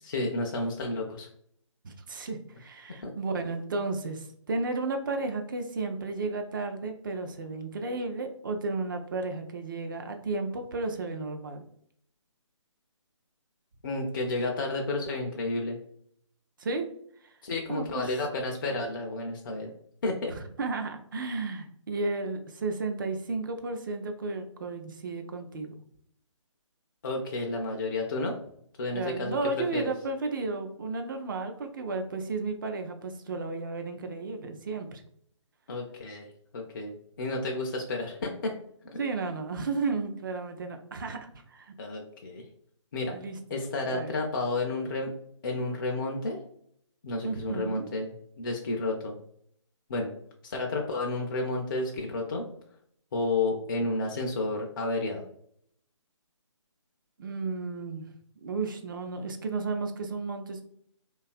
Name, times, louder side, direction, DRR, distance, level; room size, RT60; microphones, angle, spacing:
voice 1, 0.1-1.3 3.0-3.1 13.8-15.8 17.4-19.7 20.0-20.3 27.0-28.4 28.8-29.8 35.7-38.5 41.8-42.4 42.9-43.1 43.5-45.1 45.4-46.4 47.0-49.2 49.9-50.1 50.4-52.5 53.1-55.2, left 2 dB, 40° left, 1 dB, 0.4 m, -31 dB
voice 2, 1.8-11.6 16.6-16.9 17.2-17.3 17.7-18.1 20.3-25.7 28.9-35.0 39.0-41.7 43.1-44.1 47.2-47.9 57.2-58.1 58.4-60.7, right 3 dB, 40° right, 6 dB, 0.4 m, -33 dB
2.6 x 2.3 x 2.4 m, 0.67 s
figure-of-eight pair, 150°, 16 cm